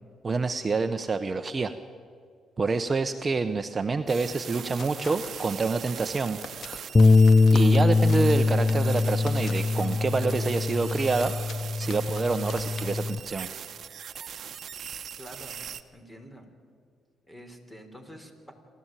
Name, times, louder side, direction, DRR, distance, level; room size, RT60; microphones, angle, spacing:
voice 1, 0.2-1.7 2.6-6.4 7.5-11.3 11.8-13.5, right 4 dB, 30° right, 9 dB, 0.9 m, -27 dB
sound 1, 4.1-12.9, left 4 dB, 55° left, 2.2 m, -45 dB
sound 2, 4.1-15.8, right 8 dB, 60° right, 1.1 m, -40 dB
Bass guitar, 6.9-13.2, left 3 dB, 30° left, 0.5 m, -22 dB
voice 2, 15.2-15.6 15.9-16.5 17.3-18.5, equal, 10° left, 6 dB, 3.7 m, -47 dB
28.0 x 13.0 x 9.0 m, 2.1 s
cardioid pair, 90°, 0 cm